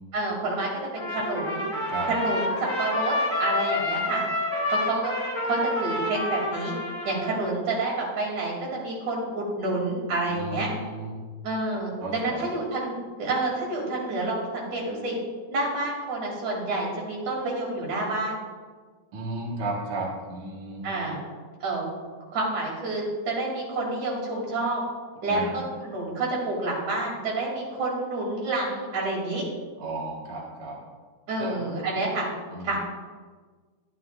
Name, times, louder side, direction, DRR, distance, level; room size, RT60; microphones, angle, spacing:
voice 1, 0.1-1.6 2.1-3.1 3.4-4.2 4.7-5.1 5.4-6.7 7.1-10.7 11.4-15.2 15.5-18.4 20.8-21.2 21.6-21.9 22.3-24.8 25.2-29.4 31.3-32.3 32.6-32.8, right 2 dB, 75° right, -3 dB, 4.0 m, -28 dB
Trumpet, 1.0-7.6, left 2 dB, 5° right, 2.0 m, -28 dB
voice 2, 10.3-11.1 12.0-12.4 19.1-20.9 25.3-25.5 29.8-30.8 31.4-31.6 32.5-32.8, right 2 dB, 50° right, -3 dB, 2.1 m, -34 dB
11.5 x 11.5 x 2.5 m, 1.5 s
omnidirectional pair, 3.4 m